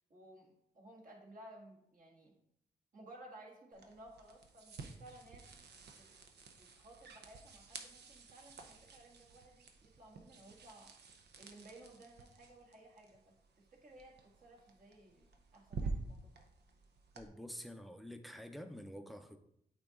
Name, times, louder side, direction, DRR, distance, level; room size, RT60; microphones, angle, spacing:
voice 1, 0.1-2.3 2.9-5.5 6.0-6.1 6.6-10.9 11.4-15.3 15.5-16.5, right 1 dB, 50° right, -2 dB, 1.8 m, -57 dB
sound 1, 3.7-17.3, right 4 dB, 70° right, 0.8 m, -50 dB
voice 2, 17.1-19.4, equal, ahead, 8 dB, 0.7 m, -48 dB
8.4 x 3.0 x 3.8 m, 0.74 s
cardioid pair, 60°, 18 cm